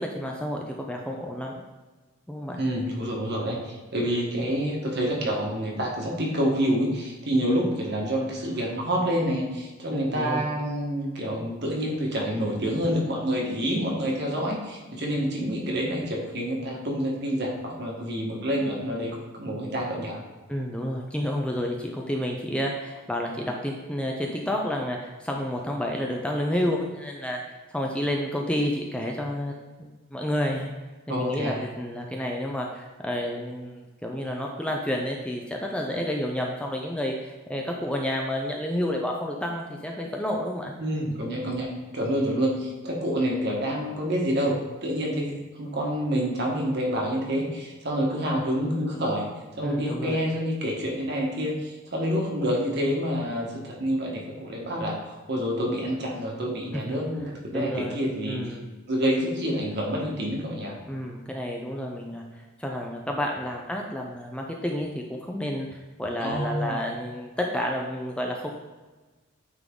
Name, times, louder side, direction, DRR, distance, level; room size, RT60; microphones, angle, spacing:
voice 1, 0.0-1.5 2.3-2.6 9.9-10.5 20.5-27.4 27.7-29.5 29.8-30.7 31.1-40.7 49.6-50.2 56.7-57.0 57.5-58.6 60.9-62.2 62.6-68.6, left 1 dB, 5° left, 0 dB, 0.5 m, -30 dB
voice 2, 2.6-20.2 31.1-31.6 40.8-49.3 49.5-58.4 58.9-60.7 66.2-66.8, equal, 55° right, -2 dB, 1.6 m, -28 dB
9.0 x 3.9 x 3.8 m, 1.3 s
head